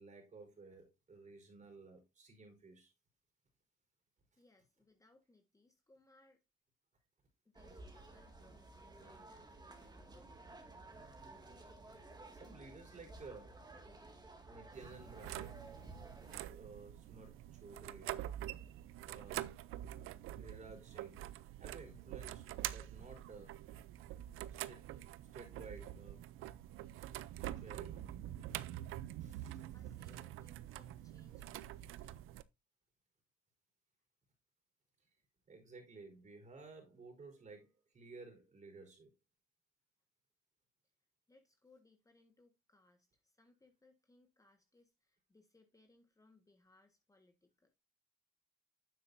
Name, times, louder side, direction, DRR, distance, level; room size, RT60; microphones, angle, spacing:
voice 1, 0.0-2.9 11.9-12.0 12.3-13.7 14.5-16.0 16.4-18.2 19.0-19.5 20.4-21.2 21.6-23.6 24.3-25.0 25.3-26.2 27.6-28.1 28.5-28.6 29.2-29.7 35.5-39.1, right 3 dB, 35° right, 4.6 m, -55 dB
voice 2, 4.4-6.4 7.4-10.5 29.7-32.3 41.3-47.7, left 2 dB, 15° left, 1.6 m, -69 dB
sound 1, 7.5-16.5, right 2 dB, 20° right, 2.1 m, -55 dB
sound 2, 14.7-32.4, right 13 dB, 75° right, 0.6 m, -46 dB
9.8 x 7.6 x 2.7 m
cardioid pair, 95°, 21 cm